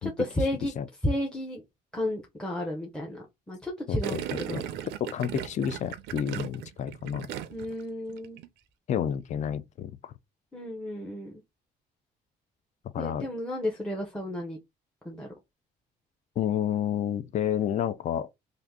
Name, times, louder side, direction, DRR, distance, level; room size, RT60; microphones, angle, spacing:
voice 1, 0.0-0.7 1.0-1.6 1.9-4.6 7.5-8.4 10.5-11.3 13.0-14.6 15.0-15.3, left 1 dB, 5° left, 0.7 m, -32 dB
voice 2, 3.9-4.6 5.0-7.3 8.9-10.1 12.9-13.3 16.4-18.3, left 9 dB, 45° left, 0.4 m, -30 dB
Gurgling, 4.0-7.8 8.1-8.5, right 10 dB, 85° right, 0.5 m, -36 dB
2.7 x 2.5 x 3.5 m
cardioid pair, 110°, 17 cm